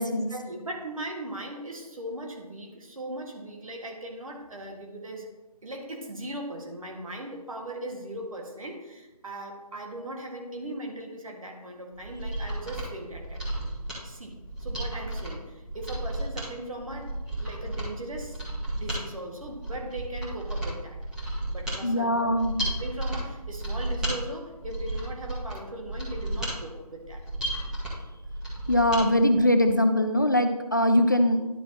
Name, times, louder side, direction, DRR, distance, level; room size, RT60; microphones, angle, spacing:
voice 1, 0.1-5.3 5.6-13.7 14.0-17.1 17.4-18.4 18.7-21.0 21.5-22.3 22.8-27.2, right 1 dB, 60° right, 1 dB, 1.8 m, -39 dB
Mechanisms, 12.0-29.0 29.4-29.5, right 1 dB, 5° right, 1.3 m, -33 dB
voice 2, 21.8-22.6 28.7-31.5, left 1 dB, 30° left, 7 dB, 0.4 m, -22 dB
11.5 x 6.1 x 2.9 m, 1.1 s
figure-of-eight pair, 160°, 20 cm